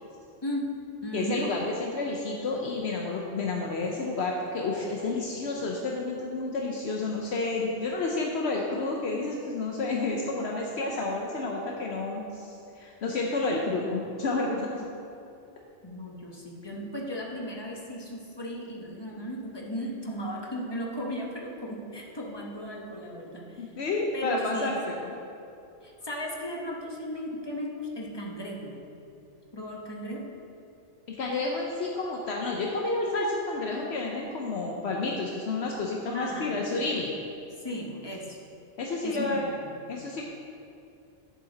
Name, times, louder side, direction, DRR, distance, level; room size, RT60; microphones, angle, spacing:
voice 1, 0.4-1.5 15.8-23.7 24.1-24.9 25.8-28.8 29.5-30.4 36.1-36.6 37.6-38.4 39.0-39.8, equal, 25° left, -1 dB, 0.9 m, -36 dB
voice 2, 1.1-14.8 23.6-24.7 25.0-25.1 31.1-37.1 38.8-39.5 39.9-40.2, left 3 dB, 70° left, -1 dB, 1.0 m, -30 dB
8.5 x 7.0 x 3.9 m, 2.7 s
omnidirectional pair, 1.2 m